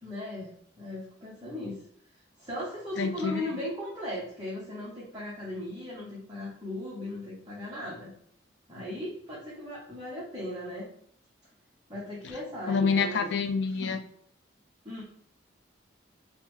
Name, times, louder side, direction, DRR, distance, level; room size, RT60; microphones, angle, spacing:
voice 1, 0.0-1.8 2.4-8.1 8.7-10.9 11.9-13.3 13.8-14.0 14.8-15.0, left 1 dB, 20° right, -7 dB, 0.7 m, -37 dB
voice 2, 3.0-3.5 12.2-12.3 12.7-14.0, left 5 dB, 60° left, 7 dB, 0.4 m, -27 dB
3.7 x 2.0 x 3.0 m, 0.67 s
head